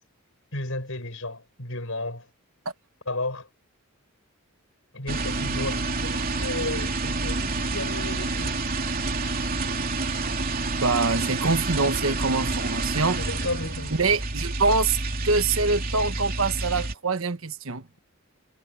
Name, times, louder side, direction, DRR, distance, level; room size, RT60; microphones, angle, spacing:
voice 1, 0.5-2.3 3.1-3.5 4.9-8.6 13.2-14.0, left 2 dB, 65° left, 7.8 m, -33 dB
sound 1, 5.1-16.9, right 3 dB, 40° right, 3.3 m, -28 dB
voice 2, 10.8-13.2 14.0-15.0 15.2-17.8, right 3 dB, 60° right, 1.4 m, -24 dB
head